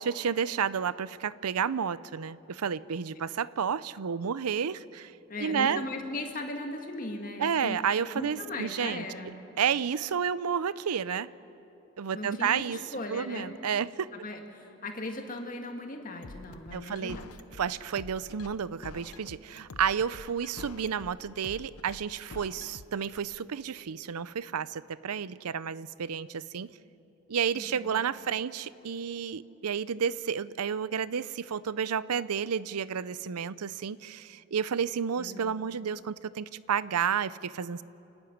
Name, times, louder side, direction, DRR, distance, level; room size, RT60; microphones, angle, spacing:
voice 1, 0.0-5.1 5.4-5.8 7.4-9.0 9.6-11.3 12.0-12.8 13.1-14.1 16.7-17.2 17.6-26.7 27.3-37.8, right 7 dB, 90° right, 18 dB, 0.5 m, -31 dB
voice 2, 5.3-7.8 8.1-9.3 12.1-13.6 14.1-17.3 27.5-28.0 35.2-35.6, left 2 dB, 35° left, 3 dB, 1.9 m, -38 dB
sound 1, 16.2-23.2, left 3 dB, 85° left, 0.8 m, -46 dB
28.5 x 12.0 x 9.6 m, 2.9 s
head